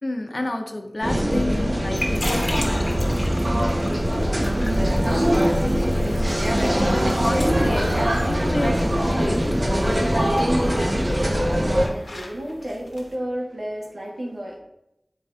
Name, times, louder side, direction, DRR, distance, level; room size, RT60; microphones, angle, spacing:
voice 1, 0.0-2.9 5.7-10.6, left 1 dB, 60° left, 3 dB, 1.2 m, -30 dB
sound 1, 1.0-11.9, equal, 60° right, 1.8 m, -22 dB
sound 2, 1.6-13.1, left 1 dB, 85° left, 1.4 m, -38 dB
voice 2, 3.7-5.4 10.8-14.6, right 1 dB, 85° right, -4 dB, 2.1 m, -33 dB
12.0 x 4.7 x 2.9 m, 0.86 s
wide cardioid pair, 55°, 0 cm